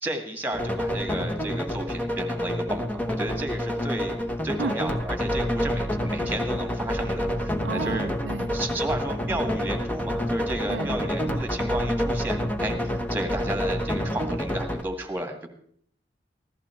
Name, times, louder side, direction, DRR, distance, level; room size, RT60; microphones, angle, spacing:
voice 1, 0.0-4.1 4.4-8.1 8.5-15.5, right 1 dB, 10° right, 1.8 m, -33 dB
sound 1, 0.5-14.8, equal, 10° left, 1.1 m, -28 dB
voice 2, 7.6-8.5 10.7-10.9, right 4 dB, 85° right, 0.6 m, -32 dB
15.5 x 14.0 x 4.4 m
head